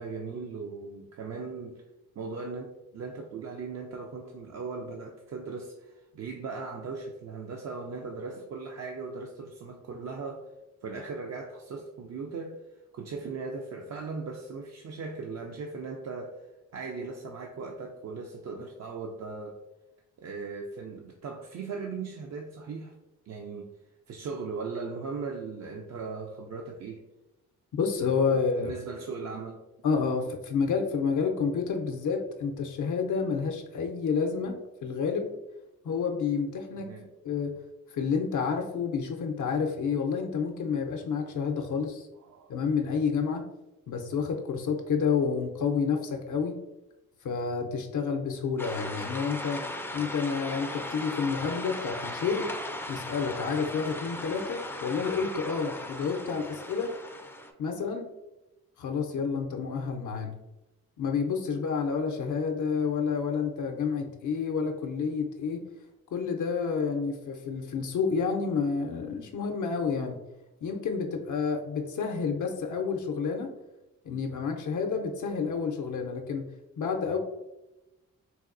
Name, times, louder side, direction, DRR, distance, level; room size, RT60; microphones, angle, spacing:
voice 1, 0.0-1.8 2.2-10.5 10.8-12.6 12.9-16.5 16.7-19.6 20.2-22.9 23.3-23.7 24.1-27.0 28.5-29.6 36.8-37.1 42.2-42.5, right 4 dB, 50° right, 1 dB, 0.4 m, -38 dB
voice 2, 27.7-28.7 29.8-34.6 34.8-35.3 35.8-36.9 37.2-37.5 37.9-42.1 42.5-43.4 43.9-46.6 47.2-49.6 49.9-52.5 52.9-56.9 57.6-58.1 58.8-60.3 61.0-65.6 66.1-70.2 70.6-73.5 74.0-76.5 76.8-77.2, left 5 dB, 60° left, 3 dB, 0.5 m, -29 dB
sound 1, 48.6-57.5, left 1 dB, 5° left, 0.4 m, -38 dB
4.1 x 2.2 x 2.4 m, 0.99 s
supercardioid pair, 55°, 35 cm